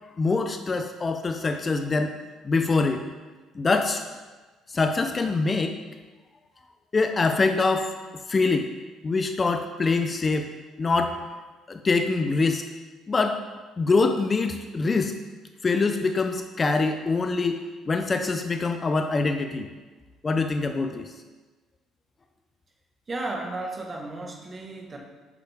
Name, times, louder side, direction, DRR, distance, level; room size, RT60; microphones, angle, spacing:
voice 1, 0.2-2.2 2.4-3.0 3.5-4.0 4.7-5.7 6.9-7.9 8.3-8.7 9.0-10.5 10.8-11.2 11.7-12.6 13.1-13.4 13.8-15.2 15.6-17.6 17.9-19.7 20.2-21.1, left 3 dB, 25° left, 6 dB, 0.5 m, -24 dB
voice 2, 23.1-25.0, right 2 dB, 30° right, 1 dB, 1.3 m, -34 dB
8.2 x 6.7 x 3.4 m, 1.3 s
cardioid pair, 110°, 0 cm